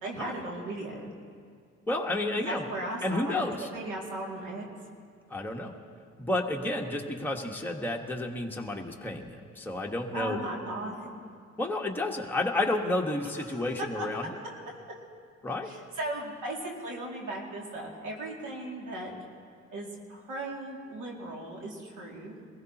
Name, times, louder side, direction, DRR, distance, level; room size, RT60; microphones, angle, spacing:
voice 1, 0.0-1.1 2.4-4.7 10.1-11.2 13.5-13.7 14.0-14.1 14.4-14.6 15.6-19.1 19.7-22.4, right 1 dB, 80° right, -2 dB, 2.7 m, -37 dB
voice 2, 1.9-2.6 3.0-3.7 5.3-5.7 6.2-10.4 11.6-14.3 15.4-15.7, left 2 dB, 5° left, -1 dB, 1.5 m, -31 dB
22.5 x 16.0 x 3.0 m, 2.1 s
cardioid pair, 90°, 30 cm